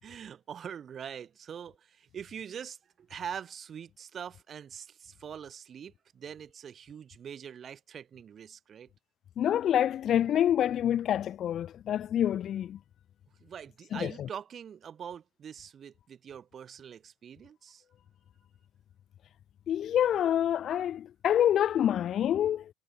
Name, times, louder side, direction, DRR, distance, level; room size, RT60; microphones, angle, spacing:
voice 1, 0.0-8.9 13.4-17.8, right 8 dB, 25° right, 4.8 m, -43 dB
voice 2, 9.4-12.8 13.9-14.3 19.7-22.7, left 10 dB, 35° left, 0.3 m, -27 dB
cardioid pair, 150°, 0 cm